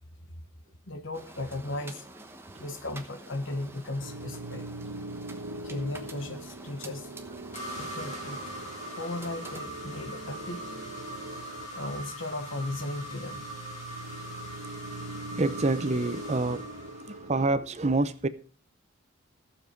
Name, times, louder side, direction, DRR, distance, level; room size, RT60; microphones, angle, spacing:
voice 1, 0.9-2.0 2.6-4.7 5.6-7.1 7.8-8.4 8.9-10.6 11.7-13.4, left 2 dB, 60° left, 1.3 m, -36 dB
sound 1, 1.1-9.6, right 2 dB, 10° right, 1.0 m, -48 dB
sound 2, 4.0-17.6, right 2 dB, 85° right, 1.2 m, -42 dB
sound 3, 7.5-17.5, equal, 35° left, 4.4 m, -42 dB
voice 2, 15.3-16.6 17.0-18.3, right 2 dB, 30° right, 0.6 m, -27 dB
14.5 x 7.2 x 5.1 m
head